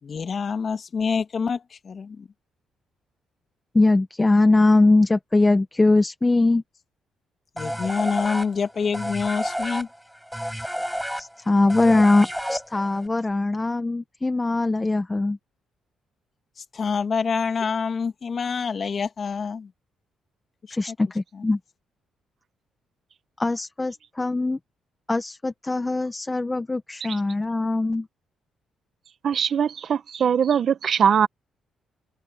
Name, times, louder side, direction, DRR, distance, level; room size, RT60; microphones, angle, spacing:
voice 1, 0.0-2.3 7.6-9.9 16.6-19.7 20.6-21.0 21.3-21.5, left 5 dB, 45° left, 2.6 m, -27 dB
voice 2, 3.7-6.6 11.2-15.4 20.7-21.6 23.4-24.6 25.1-28.1, left 2 dB, 20° left, 1.1 m, -21 dB
sound 1, 7.6-13.1, equal, ahead, 7.2 m, -30 dB
voice 3, 29.2-31.3, right 7 dB, 55° right, 1.2 m, -21 dB
cardioid pair, 90°, 0 cm